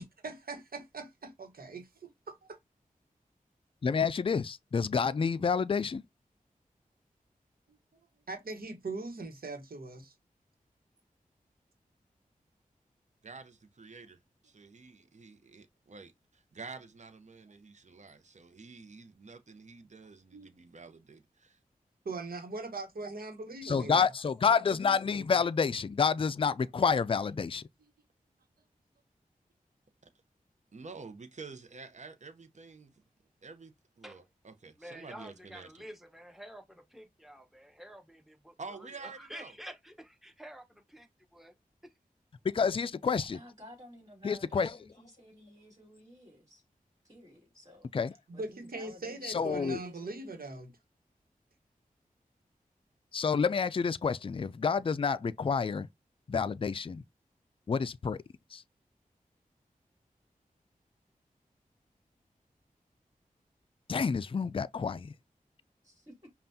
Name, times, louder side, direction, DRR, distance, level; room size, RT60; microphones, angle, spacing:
voice 1, 0.0-2.6 7.7-7.8 8.3-10.1 20.3-20.5 22.0-24.0 48.3-50.7, right 3 dB, 80° right, 1.2 m, -41 dB
voice 2, 3.8-6.0 23.6-27.6 42.4-43.4 44.2-44.7 47.9-48.1 49.2-49.8 53.1-55.9 56.3-57.0 57.7-58.2 58.5-58.6 63.9-65.1, left 5 dB, 35° left, 0.3 m, -29 dB
voice 3, 13.2-21.6 30.0-30.1 30.7-33.0 33.4-35.7 38.6-39.5, right 4 dB, 50° right, 0.8 m, -49 dB
voice 4, 34.8-41.5 41.8-41.9, equal, ahead, 1.0 m, -49 dB
voice 5, 43.3-46.6 47.0-50.5 65.8-66.3, left 1 dB, 25° right, 2.3 m, -54 dB
5.4 x 2.4 x 2.7 m
cardioid pair, 45°, 15 cm